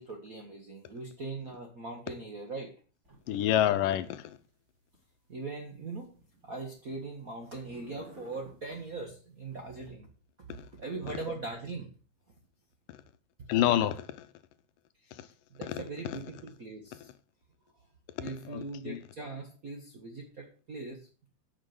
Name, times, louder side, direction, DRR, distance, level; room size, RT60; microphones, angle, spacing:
voice 1, 0.0-2.7 5.3-6.1 6.4-10.1 10.5-11.9 15.0-15.1 15.6-17.0 18.2-21.1, right 3 dB, 70° right, 0.8 m, -40 dB
sound 1, 3.0-3.7 4.0-5.0 5.6-7.2 7.5-8.9 9.5-9.9, right 1 dB, 20° right, 2.5 m, -55 dB
voice 2, 3.3-4.4 10.6-10.7 13.5-14.3 15.7-15.8 18.5-19.0, left 12 dB, 75° left, 2.2 m, -28 dB
8.8 x 6.1 x 7.8 m
omnidirectional pair, 4.1 m